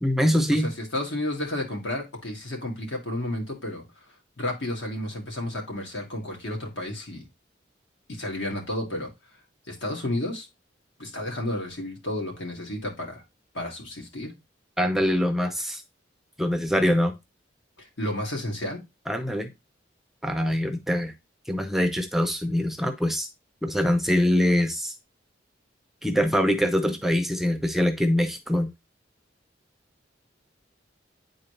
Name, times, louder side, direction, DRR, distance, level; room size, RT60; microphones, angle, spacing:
voice 1, 0.0-0.7 14.8-15.8 16.4-17.1 19.1-19.5 20.2-21.1 21.5-23.3 23.6-24.9 26.0-28.7, equal, ahead, 6 dB, 0.5 m, -23 dB
voice 2, 0.5-3.8 4.4-7.2 8.1-9.1 9.7-10.5 11.0-13.2 13.5-14.3 17.8-18.8, left 1 dB, 70° left, 1 dB, 2.1 m, -32 dB
9.2 x 4.0 x 3.2 m, 0.22 s
head